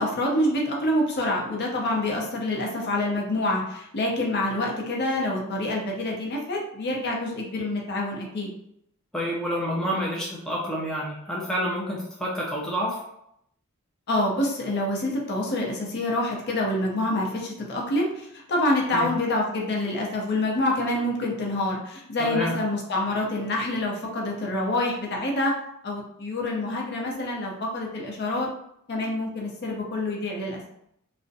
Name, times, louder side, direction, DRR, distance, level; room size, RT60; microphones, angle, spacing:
voice 1, 0.0-8.5 14.1-25.5 25.8-28.5 28.9-30.6, left 1 dB, 50° left, -1 dB, 0.6 m, -27 dB
voice 2, 9.1-13.0 18.9-19.1 22.2-22.5, equal, 5° left, -5 dB, 0.4 m, -28 dB
2.5 x 2.1 x 2.5 m, 0.75 s
head